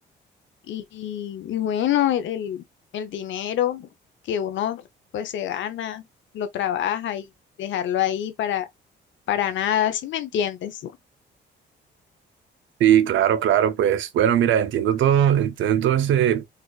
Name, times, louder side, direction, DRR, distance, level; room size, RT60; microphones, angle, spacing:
voice 1, 0.7-2.6 2.9-3.9 4.2-4.8 5.1-6.0 6.3-7.3 7.6-8.7 9.3-10.9, left 10 dB, 70° left, 0.7 m, -26 dB
voice 2, 12.8-16.4, right 10 dB, 75° right, 0.6 m, -19 dB
4.1 x 2.5 x 2.3 m
cardioid pair, 90°, 20 cm